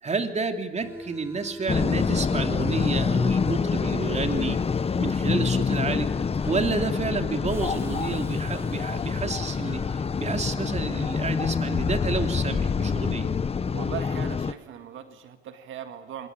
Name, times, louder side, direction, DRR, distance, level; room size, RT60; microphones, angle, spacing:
voice 1, 0.0-4.6 5.0-13.3, right 4 dB, 35° right, 6 dB, 3.0 m, -30 dB
Subway metro underground, 0.8-15.1, right 1 dB, 10° right, 4.1 m, -46 dB
sound 1, 1.7-14.5, left 5 dB, 30° left, 0.9 m, -26 dB
voice 2, 13.7-16.3, right 9 dB, 80° right, 8 dB, 2.1 m, -39 dB
26.0 x 22.0 x 8.7 m, 1.0 s
cardioid pair, 90°, 20 cm